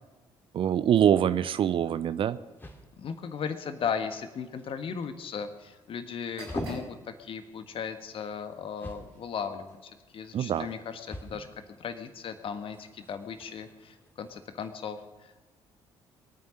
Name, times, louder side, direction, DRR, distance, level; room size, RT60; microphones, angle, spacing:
voice 1, 0.5-2.4 10.3-10.7, right 9 dB, 45° right, 15 dB, 0.7 m, -24 dB
sound 1, 2.1-14.7, left 1 dB, 15° left, 2.6 m, -46 dB
voice 2, 3.0-11.5 11.8-15.3, left 6 dB, 45° left, 9 dB, 1.6 m, -37 dB
sound 2, 6.2-14.0, right 2 dB, 85° right, 5.9 m, -56 dB
23.0 x 9.4 x 6.4 m, 1.2 s
figure-of-eight pair, 50°, 13 cm